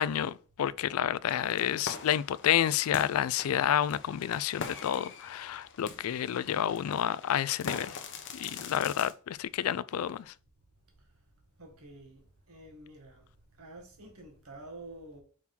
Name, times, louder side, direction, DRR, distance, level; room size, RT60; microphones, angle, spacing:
voice 1, 0.0-8.0 8.3-10.3, left 10 dB, 80° left, 0.3 m, -29 dB
sound 1, 1.3-9.1, left 5 dB, 60° left, 1.0 m, -43 dB
voice 2, 11.6-13.3 13.6-15.2, right 2 dB, 85° right, 1.7 m, -49 dB
6.1 x 3.6 x 4.3 m
head